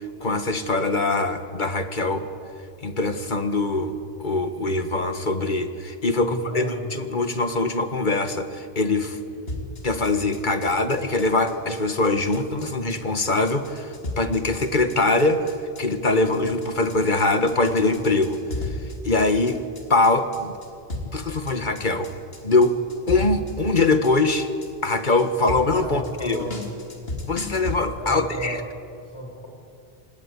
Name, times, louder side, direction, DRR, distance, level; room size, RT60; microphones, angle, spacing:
voice 1, 0.2-2.2 2.8-9.2 9.8-18.4 18.7-18.8 19.0-19.6 19.9-20.5 21.1-22.1 22.4-22.8 23.1-24.5 24.8-26.5 27.3-28.6, left 2 dB, 50° left, 9 dB, 1.7 m, -23 dB
voice 2, 6.1-6.8 25.8-26.6 28.0-28.7 29.0-29.5, right 1 dB, 25° left, 0 dB, 6.4 m, -33 dB
sound 1, 9.5-27.8, left 1 dB, 70° left, 3.5 m, -35 dB
27.0 x 19.5 x 8.4 m, 2.4 s
omnidirectional pair, 1.0 m